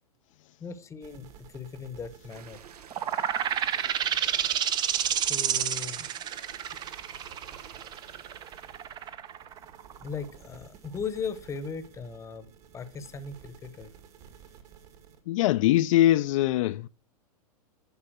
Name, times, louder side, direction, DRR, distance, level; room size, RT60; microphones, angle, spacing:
voice 1, 0.6-2.6 5.3-6.1 10.0-12.5 12.7-13.9, left 5 dB, 15° left, 0.9 m, -38 dB
sound 1, 1.0-15.2, right 8 dB, 50° right, 2.2 m, -53 dB
sound 2, 2.3-9.1, right 8 dB, 85° right, 1.0 m, -51 dB
sound 3, 2.9-10.2, right 9 dB, 20° right, 0.5 m, -29 dB
voice 2, 15.3-16.9, left 14 dB, 60° left, 0.4 m, -23 dB
10.0 x 5.4 x 6.1 m
hypercardioid pair, 130°, 19 cm